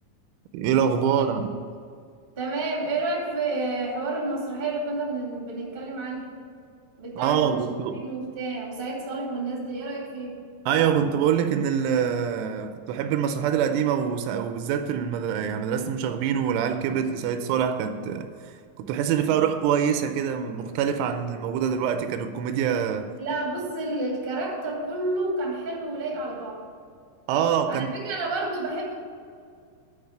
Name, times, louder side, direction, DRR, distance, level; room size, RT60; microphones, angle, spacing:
voice 1, 0.5-1.5 7.2-8.0 10.7-18.3 18.8-23.1 27.3-27.9, right 8 dB, 85° right, 8 dB, 3.0 m, -25 dB
voice 2, 2.3-6.3 7.0-7.6 7.9-10.4 23.2-26.6 27.7-28.9, right 2 dB, 25° right, -3 dB, 1.3 m, -30 dB
10.5 x 5.2 x 7.9 m, 2.2 s
omnidirectional pair, 5.7 m